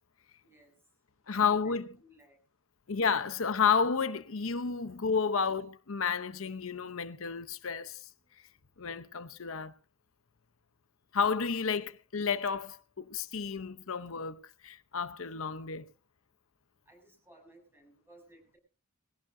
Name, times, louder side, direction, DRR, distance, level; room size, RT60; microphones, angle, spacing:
voice 1, 0.4-0.7 1.3-2.4 5.3-5.4 8.2-8.3 16.8-18.6, right 1 dB, 10° right, 6.7 m, -59 dB
voice 2, 1.3-1.9 2.9-8.0 8.8-9.7 11.1-15.9, left 6 dB, 90° left, 0.9 m, -31 dB
20.5 x 16.5 x 2.7 m
head